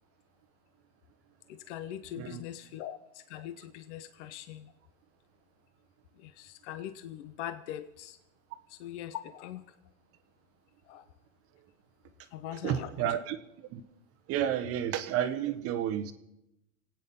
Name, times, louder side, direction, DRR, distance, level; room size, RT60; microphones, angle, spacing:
voice 1, 1.5-4.7 6.2-8.2 8.7-9.7 10.9-11.1 12.3-13.1, left 11 dB, 55° left, 12 dB, 0.9 m, -42 dB
voice 2, 12.6-13.4 13.7-13.8 14.3-16.1, right 10 dB, 35° right, 10 dB, 1.0 m, -31 dB
25.0 x 9.2 x 5.4 m, 0.87 s
hypercardioid pair, 125°, 41 cm